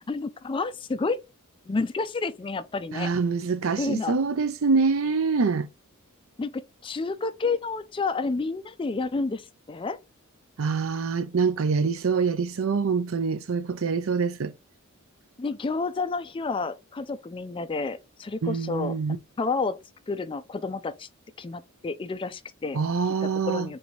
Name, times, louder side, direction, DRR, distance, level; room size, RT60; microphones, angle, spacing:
voice 1, 0.1-1.2 1.7-3.1 3.8-4.2 6.4-10.0 15.4-19.0 19.4-19.8 20.1-21.1 21.4-22.8 23.2-23.8, left 3 dB, 25° left, 0.3 m, -30 dB
voice 2, 2.9-5.7 10.6-14.5 18.4-19.2 22.7-23.7, right 5 dB, 65° right, 0.5 m, -25 dB
3.9 x 2.8 x 4.4 m
head